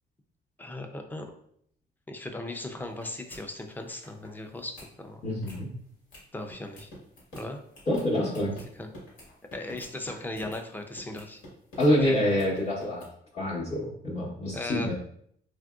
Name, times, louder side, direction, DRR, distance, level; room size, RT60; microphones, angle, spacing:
voice 1, 0.6-1.3 2.1-5.2 6.3-6.9 7.3-7.6 8.8-8.9 9.5-11.4 12.0-12.2 14.5-14.9, left 2 dB, 10° left, 5 dB, 0.4 m, -37 dB
sound 1, 2.8-3.0 3.3-3.4 3.8-4.3 4.6-4.9 5.3-5.6 6.1-6.2 6.5-10.6 11.0-11.9 12.2-13.1, equal, 90° left, 1.4 m, -47 dB
voice 2, 5.2-5.7 7.9-8.6 11.8-13.1 13.3-14.9, left 1 dB, 35° left, -7 dB, 0.8 m, -26 dB
3.5 x 2.5 x 2.3 m, 0.68 s
cardioid pair, 90°, 20 cm